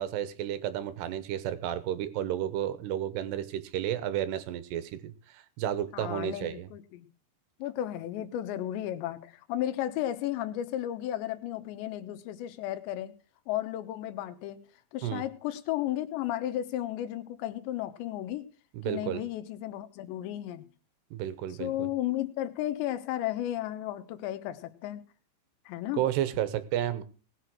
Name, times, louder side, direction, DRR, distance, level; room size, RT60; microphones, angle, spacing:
voice 1, 0.0-6.7 15.0-15.2 18.7-19.2 21.1-21.9 25.9-27.0, right 11 dB, 75° right, 13 dB, 2.8 m, -32 dB
voice 2, 5.9-7.1 7.6-13.2 13.5-14.6 14.9-18.5 18.8-20.7 21.6-25.0 25.7-26.0, left 13 dB, 75° left, 10 dB, 3.2 m, -34 dB
19.0 x 6.8 x 6.3 m, 0.38 s
omnidirectional pair, 5.4 m